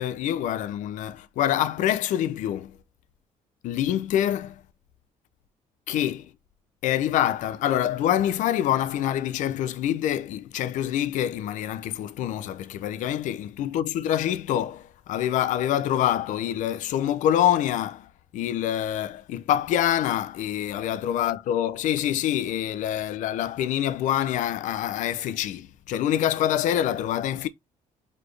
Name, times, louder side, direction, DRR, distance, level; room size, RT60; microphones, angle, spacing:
voice 1, 0.0-2.8 3.6-4.6 5.9-6.3 6.8-27.5, left 11 dB, 70° left, 0.5 m, -26 dB
4.1 x 3.3 x 3.2 m
cardioid pair, 155°, 13 cm